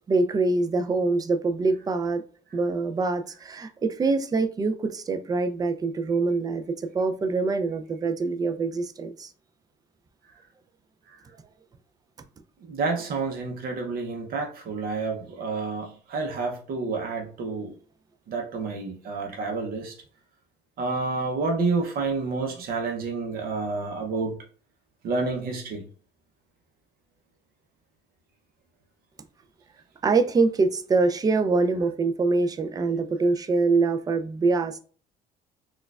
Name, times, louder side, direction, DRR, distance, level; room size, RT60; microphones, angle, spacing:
voice 1, 0.1-2.2 2.5-9.3 30.0-34.8, right 3 dB, 20° right, 8 dB, 0.4 m, -24 dB
voice 2, 12.7-17.8 18.3-19.9 20.8-24.4 25.0-25.8, right 4 dB, 60° right, 2 dB, 0.7 m, -29 dB
4.2 x 2.3 x 2.3 m, 0.41 s
cardioid pair, 110°, 17 cm